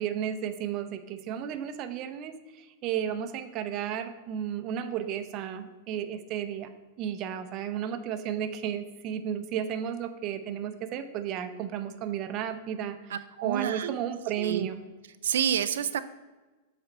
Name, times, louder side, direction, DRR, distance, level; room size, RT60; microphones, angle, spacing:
voice 1, 0.0-6.7 7.0-13.1 13.4-14.8, right 9 dB, 35° right, 8 dB, 0.6 m, -33 dB
voice 2, 13.1-14.0 14.4-14.7 15.2-16.0, right 9 dB, 85° right, 11 dB, 0.3 m, -29 dB
7.7 x 4.2 x 5.3 m, 1.2 s
supercardioid pair, 155°, 0 cm